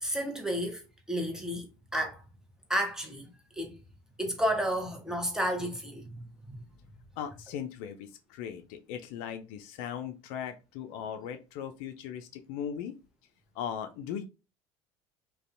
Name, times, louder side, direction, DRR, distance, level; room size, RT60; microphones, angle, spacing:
voice 1, 0.0-2.2 2.7-3.8 4.2-6.6, equal, 5° right, 0.8 m, -32 dB
voice 2, 7.2-13.0 13.6-14.2, left 8 dB, 65° left, 0.4 m, -38 dB
2.5 x 2.2 x 2.5 m
hypercardioid pair, 75°, 14 cm